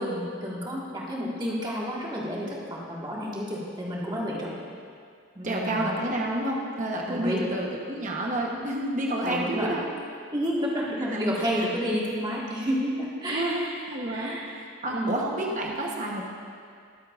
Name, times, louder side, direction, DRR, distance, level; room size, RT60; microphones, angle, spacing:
voice 1, 0.0-4.6 5.3-5.9 7.1-7.4 9.2-9.7 10.3-13.7 14.1-14.5 14.9-15.1, equal, 20° right, -5 dB, 1.7 m, -30 dB
voice 2, 5.4-9.9 11.0-11.7 13.3-16.3, right 1 dB, 35° right, -1 dB, 1.0 m, -30 dB
21.5 x 8.2 x 2.5 m, 2.2 s
head